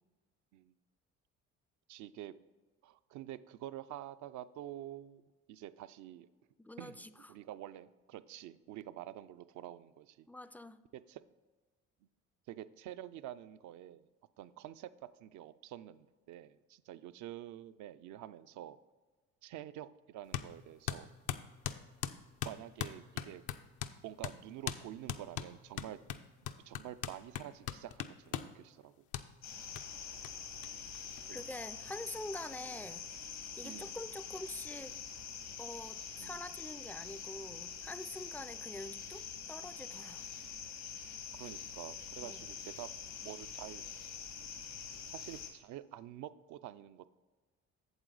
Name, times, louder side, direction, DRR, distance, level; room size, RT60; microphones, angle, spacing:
voice 1, 1.9-2.3 2.8-6.3 6.8-10.3 10.9-11.2 12.5-14.1 14.4-18.8 19.4-21.1 22.5-23.4 24.0-26.2 26.6-29.0 31.3-31.4 32.6-32.8 33.6-34.0 36.2-36.4 41.3-42.9 43.2-43.8 45.1-47.1, right 12 dB, 65° right, 13 dB, 0.5 m, -48 dB
voice 2, 6.6-7.1 10.3-10.8 31.3-33.1 33.6-35.0 35.6-40.3 42.2-42.5, left 1 dB, 5° left, 14 dB, 0.3 m, -46 dB
sound 1, 20.3-20.5 20.9-24.0 24.2-24.4 24.7-24.8 25.1-28.5 29.1-29.3 29.8-29.9 30.2-30.3 30.6-30.7 30.9-31.7, left 10 dB, 70° left, 0.6 m, -39 dB
sound 2, 29.4-45.5, left 7 dB, 85° left, 1.9 m, -45 dB
8.0 x 7.5 x 3.9 m, 1.3 s
hypercardioid pair, 60°, 32 cm